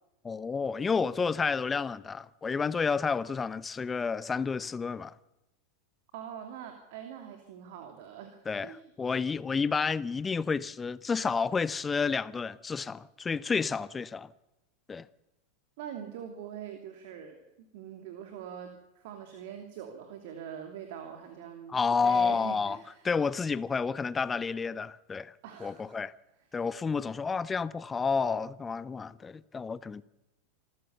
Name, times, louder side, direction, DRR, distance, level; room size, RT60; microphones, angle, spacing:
voice 1, 0.2-5.1 8.5-14.3 14.9-15.0 21.7-22.8 23.0-25.3 25.6-26.1 26.5-30.0, left 5 dB, 20° left, 0.7 m, -30 dB
voice 2, 6.1-8.8 15.8-17.4 17.7-23.0 25.4-26.0, right 9 dB, 55° right, 2.8 m, -43 dB
26.5 x 14.0 x 7.0 m
figure-of-eight pair, 90°, 0 cm